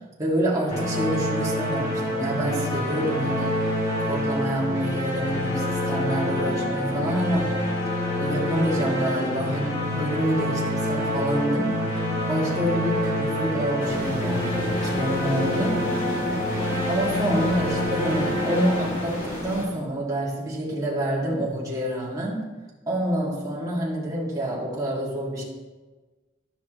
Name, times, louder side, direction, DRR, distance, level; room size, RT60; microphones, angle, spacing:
voice 1, 0.2-3.8 4.1-7.7 8.2-11.8 12.3-15.9 16.9-22.5 22.9-25.4, right 1 dB, 20° right, -6 dB, 2.2 m, -27 dB
sound 1, 0.7-19.6, left 1 dB, 35° left, 2.4 m, -27 dB
sound 2, 13.8-19.6, left 1 dB, 85° left, 3.1 m, -33 dB
13.0 x 6.0 x 3.1 m, 1.2 s
head